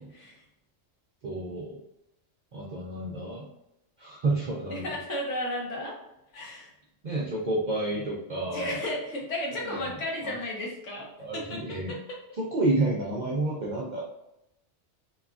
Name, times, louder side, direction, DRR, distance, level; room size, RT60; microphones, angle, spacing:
voice 1, 1.2-1.8 2.5-3.5 4.0-4.9 7.0-8.8 9.5-10.0 10.2-10.4 11.2-12.0 12.4-14.0, right 2 dB, 60° right, -5 dB, 0.5 m, -30 dB
voice 2, 4.7-5.9 6.3-6.7 8.5-11.1 11.3-11.6 11.9-12.0, left 1 dB, 75° left, -2 dB, 1.2 m, -33 dB
2.9 x 2.3 x 2.4 m, 0.86 s
omnidirectional pair, 1.3 m